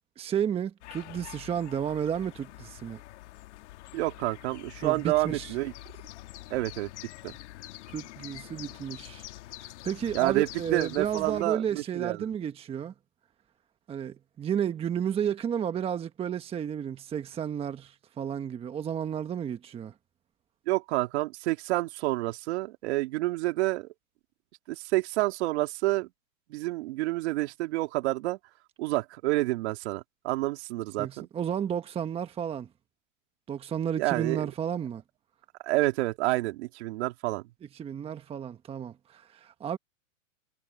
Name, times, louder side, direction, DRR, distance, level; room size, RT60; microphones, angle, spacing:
voice 1, 0.2-3.0 4.8-5.5 7.9-9.3 9.6-12.9 13.9-19.9 31.0-32.7 33.5-35.0 37.7-39.8, right 8 dB, 15° right, 1.1 m, -32 dB
sound 1, 0.8-11.4, left 17 dB, 60° left, 1.9 m, -46 dB
voice 2, 3.9-5.7 6.5-6.9 7.2-7.3 10.1-12.2 20.7-23.9 24.7-26.1 26.5-28.4 28.8-31.3 34.0-34.5 35.6-37.4, right 19 dB, 55° right, 2.3 m, -29 dB
hypercardioid pair, 140°, 40 cm